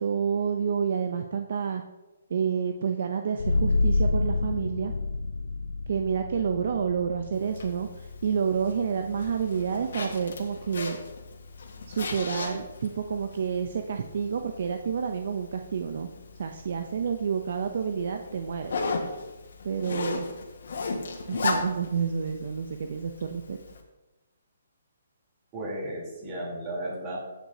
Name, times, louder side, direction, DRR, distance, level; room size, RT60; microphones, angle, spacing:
voice 1, 0.0-1.8 2.3-4.9 5.9-11.0 11.9-16.1 16.4-18.8 19.6-20.3 21.3-23.6, right 6 dB, 60° right, 6 dB, 0.6 m, -29 dB
sound 1, 3.4-14.6, left 3 dB, 90° left, 0.4 m, -31 dB
Zipper (clothing), 7.3-23.8, left 4 dB, 70° left, 1.5 m, -37 dB
voice 2, 25.5-27.2, right 1 dB, 25° right, -4 dB, 3.4 m, -34 dB
15.0 x 6.0 x 2.8 m, 1.1 s
hypercardioid pair, 160°, 0 cm